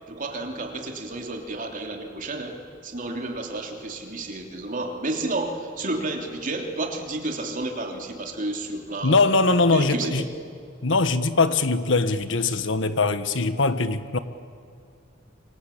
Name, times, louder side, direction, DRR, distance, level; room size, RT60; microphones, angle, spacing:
voice 1, 0.1-2.6 2.8-9.4 9.7-10.1, right 2 dB, 40° right, 3.4 m, -31 dB
voice 2, 9.0-10.2 10.8-14.2, left 3 dB, 65° left, 1.4 m, -21 dB
27.0 x 25.5 x 8.7 m
head